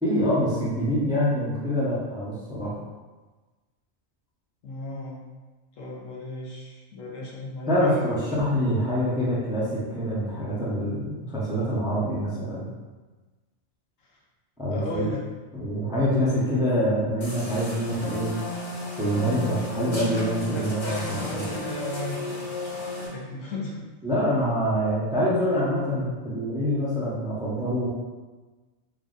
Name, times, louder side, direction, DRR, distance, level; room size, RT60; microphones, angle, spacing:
voice 1, 0.0-2.7 7.7-12.7 14.6-15.1 15.5-18.3 19.0-21.6 24.0-27.9, equal, 5° right, -7 dB, 0.6 m, -25 dB
voice 2, 4.6-5.2 5.8-8.2 14.7-15.2 20.5-23.8, left 2 dB, 75° left, -3 dB, 1.2 m, -35 dB
sound 1, 17.2-23.1, left 2 dB, 40° left, 0.4 m, -34 dB
3.3 x 2.4 x 3.9 m, 1.3 s
omnidirectional pair, 1.3 m